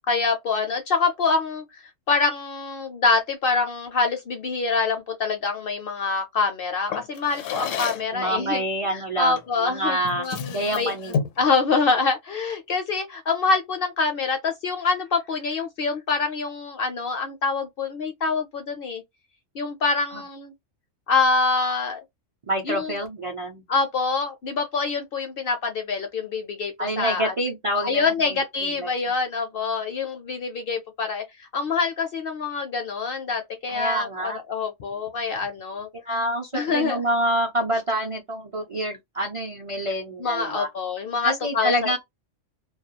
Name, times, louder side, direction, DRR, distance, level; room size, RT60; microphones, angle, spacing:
voice 1, 0.0-1.6 2.1-8.6 8.9-10.9 11.4-19.0 19.5-20.5 21.1-22.0 22.6-22.9 23.7-27.3 27.8-35.9 36.5-37.0 40.2-41.9, left 4 dB, 60° left, 0.6 m, -25 dB
Drawer open or close, 6.9-8.2 9.4-9.6 10.0-11.5, left 7 dB, 80° left, 0.9 m, -30 dB
voice 2, 8.1-10.3 10.5-11.2 22.5-23.6 26.8-28.9 33.7-34.4 36.1-40.7 41.2-42.0, right 1 dB, 45° right, 0.4 m, -27 dB
2.3 x 2.2 x 2.7 m
omnidirectional pair, 1.3 m